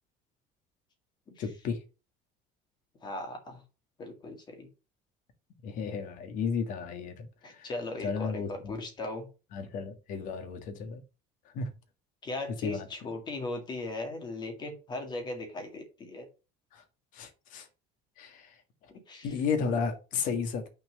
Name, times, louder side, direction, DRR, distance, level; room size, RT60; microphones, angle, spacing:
voice 1, 1.4-1.8 5.6-7.7 8.0-8.8 9.5-11.0 11.5-11.7 12.6-13.1 16.7-16.8 17.1-17.7 18.2-18.5 19.2-20.7, left 5 dB, 50° left, 1.6 m, -33 dB
voice 2, 3.0-3.6 4.0-4.7 7.4-9.3 12.2-16.3 18.9-19.3, left 2 dB, 25° left, 1.9 m, -38 dB
6.3 x 4.4 x 6.6 m
cardioid pair, 170°, 17 cm